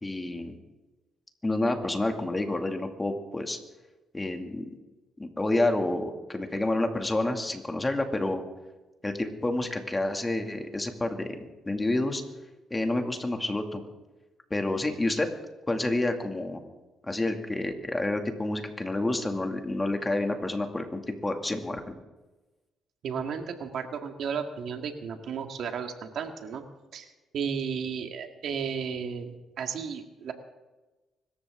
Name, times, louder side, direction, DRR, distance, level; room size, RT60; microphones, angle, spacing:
voice 1, 0.0-0.6 1.4-3.6 4.1-4.7 5.2-8.4 9.0-12.2 12.7-13.8 14.5-15.3 15.7-16.6 17.1-22.0, left 2 dB, 20° left, 4 dB, 2.3 m, -29 dB
voice 2, 23.0-26.6 26.9-27.1 27.3-30.3, right 6 dB, 70° right, 5 dB, 1.9 m, -33 dB
25.0 x 14.0 x 3.7 m, 1.1 s
cardioid pair, 90°, 0 cm